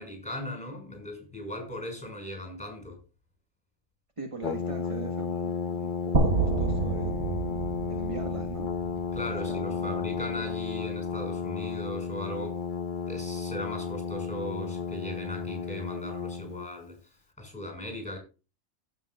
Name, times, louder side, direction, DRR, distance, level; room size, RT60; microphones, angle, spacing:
voice 1, 0.0-3.0 9.1-12.6 13.1-17.0 17.4-18.2, left 1 dB, 5° left, 5.5 m, -38 dB
voice 2, 4.2-7.3 7.9-8.7 9.3-9.9, right 3 dB, 25° right, 1.3 m, -41 dB
Brass instrument, 4.4-16.7, left 5 dB, 40° left, 1.1 m, -33 dB
sound 1, 6.1-10.2, right 3 dB, 60° right, 1.8 m, -29 dB
16.0 x 6.7 x 2.4 m
omnidirectional pair, 1.4 m